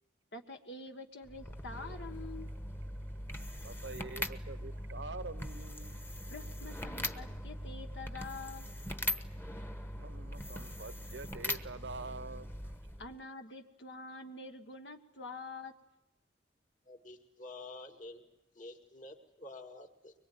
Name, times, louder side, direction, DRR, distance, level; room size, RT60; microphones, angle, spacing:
voice 1, 0.3-2.5 6.3-8.7 13.0-15.7, left 3 dB, 70° left, 1.6 m, -46 dB
sound 1, 1.2-13.2, left 1 dB, 10° left, 1.2 m, -41 dB
voice 2, 3.3-6.0 9.9-12.5, right 3 dB, 75° right, 1.0 m, -46 dB
voice 3, 16.9-18.2 18.6-20.1, left 2 dB, 45° left, 2.2 m, -49 dB
24.0 x 22.5 x 9.3 m
head